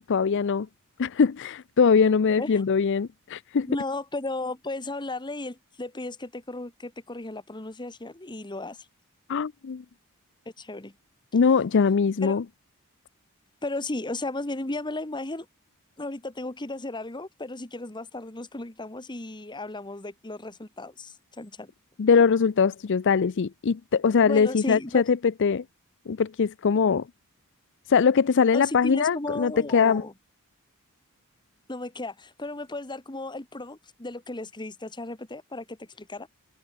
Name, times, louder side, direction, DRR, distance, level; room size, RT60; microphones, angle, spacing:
voice 1, 0.1-0.7 1.0-3.7 9.3-9.8 11.3-12.4 22.0-25.6 26.1-27.1 27.9-30.0, left 5 dB, 55° left, 0.5 m, -22 dB
voice 2, 3.6-8.8 10.6-10.9 12.2-12.4 13.6-15.5 16.0-21.7 24.3-25.1 28.5-30.1 31.7-36.3, left 2 dB, 20° left, 1.4 m, -35 dB
head